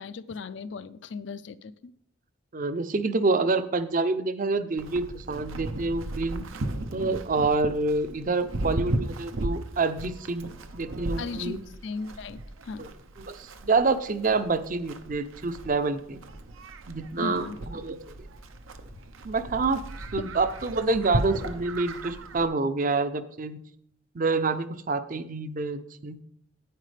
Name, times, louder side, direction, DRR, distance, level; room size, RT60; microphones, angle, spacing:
voice 1, 0.0-1.7 11.2-12.4 12.6-12.9 17.2-17.6 18.9-19.0, left 4 dB, 60° left, 15 dB, 0.4 m, -37 dB
voice 2, 2.5-6.4 6.9-11.6 12.8-12.9 13.2-16.2 16.9-18.3 19.2-19.8 20.1-23.6 24.1-26.2, right 3 dB, 40° right, 12 dB, 0.5 m, -27 dB
Livestock farm animals working animals, 4.8-22.5, right 1 dB, 90° right, 0.8 m, -36 dB
10.5 x 9.2 x 3.3 m, 0.69 s
head